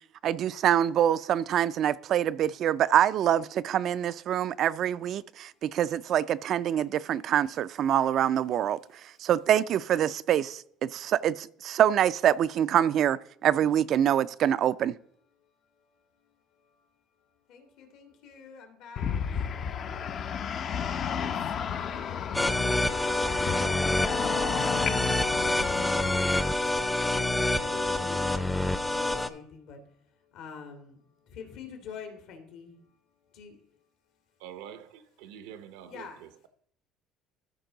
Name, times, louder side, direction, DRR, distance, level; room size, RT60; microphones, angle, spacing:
voice 1, 0.2-14.9, right 10 dB, 50° right, 0.3 m, -25 dB
voice 2, 15.4-16.9 17.5-20.5 20.8-22.4 22.8-33.0 33.2-33.9 35.9-36.3, left 6 dB, 70° left, 2.1 m, -47 dB
sound 1, 19.0-26.2, left 7 dB, 45° left, 0.6 m, -33 dB
sound 2, 22.3-29.3, left 2 dB, 5° left, 0.6 m, -27 dB
voice 3, 34.4-36.5, right 9 dB, 85° right, 0.8 m, -46 dB
13.5 x 4.6 x 3.9 m
cardioid pair, 115°, 0 cm